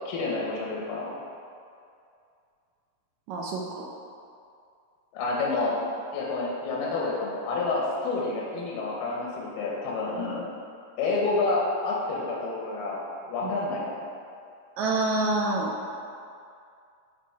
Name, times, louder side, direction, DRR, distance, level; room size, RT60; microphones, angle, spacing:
voice 1, 0.1-1.2 5.1-5.8 6.1-10.4 11.0-14.0, left 3 dB, 85° left, -4 dB, 2.7 m, -29 dB
voice 2, 3.3-3.9 10.2-10.3 13.4-13.5 14.8-15.7, right 2 dB, 80° right, -2 dB, 1.7 m, -27 dB
9.1 x 3.3 x 4.6 m, 2.4 s
omnidirectional pair, 3.9 m